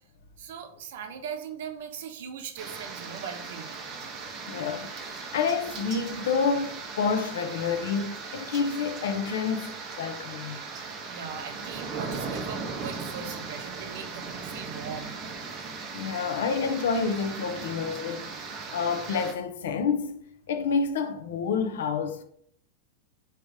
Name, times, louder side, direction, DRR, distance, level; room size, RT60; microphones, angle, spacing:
voice 1, 0.4-3.8 11.1-15.1, right 7 dB, 60° right, 0.6 m, -39 dB
sound 1, 2.6-19.3, right 4 dB, 25° right, 0.6 m, -38 dB
voice 2, 4.5-10.6 15.9-22.2, left 5 dB, 85° left, 0.6 m, -29 dB
4.7 x 2.9 x 3.3 m
supercardioid pair, 175°, 0 cm